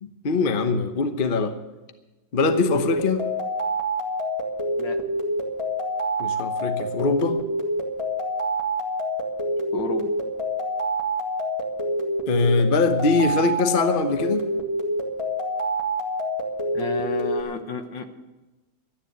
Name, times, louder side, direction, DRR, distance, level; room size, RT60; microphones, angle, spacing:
voice 1, 0.0-1.5 2.3-3.2 6.2-7.4 12.3-14.4, left 4 dB, 40° left, 8 dB, 0.8 m, -22 dB
sound 1, 2.4-17.4, equal, 15° left, 1.9 m, -27 dB
voice 2, 9.7-10.1 16.7-18.1, left 4 dB, 70° left, 7 dB, 1.9 m, -31 dB
13.0 x 10.0 x 8.0 m, 1.1 s
omnidirectional pair, 2.1 m